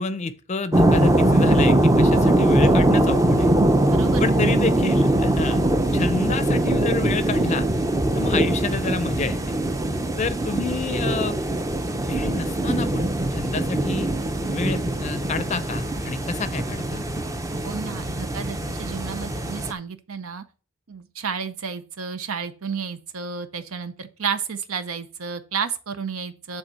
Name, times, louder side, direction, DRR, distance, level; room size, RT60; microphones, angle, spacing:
voice 1, 0.0-3.5 4.2-5.6 5.9-7.7 8.1-9.5 10.2-11.4 12.0-14.1 14.5-17.0, left 4 dB, 35° left, 0.5 m, -28 dB
sound 1, 0.7-19.7, right 1 dB, 15° right, 0.5 m, -22 dB
voice 2, 3.9-4.2 17.6-20.4 20.9-26.6, right 6 dB, 85° right, 0.6 m, -31 dB
7.9 x 3.6 x 6.2 m
head